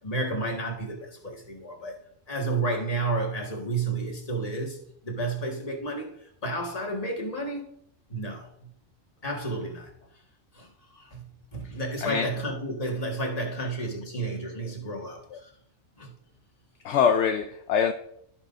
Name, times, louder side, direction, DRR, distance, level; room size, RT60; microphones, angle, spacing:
voice 1, 0.0-2.0 2.3-7.7 8.1-8.7 9.2-9.9 10.5-15.5 16.0-16.1, right 2 dB, 30° left, 1.8 m, -31 dB
voice 2, 16.8-17.9, left 7 dB, 70° left, 0.9 m, -24 dB
15.0 x 6.1 x 2.6 m
omnidirectional pair, 1.3 m